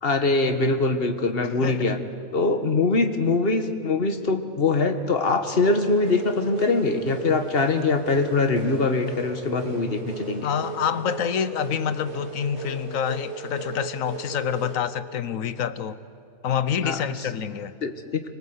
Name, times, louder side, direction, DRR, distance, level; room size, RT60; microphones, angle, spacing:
voice 1, 0.0-2.0 2.3-10.5 16.8-17.0 17.8-18.2, left 3 dB, 50° left, 7 dB, 1.6 m, -23 dB
voice 2, 1.6-1.9 10.4-16.0 16.4-17.7, left 8 dB, 85° left, 14 dB, 1.3 m, -27 dB
sound 1, 5.6-14.8, right 6 dB, 55° right, 2.5 m, -36 dB
25.5 x 22.5 x 8.0 m, 2.7 s
omnidirectional pair, 1.4 m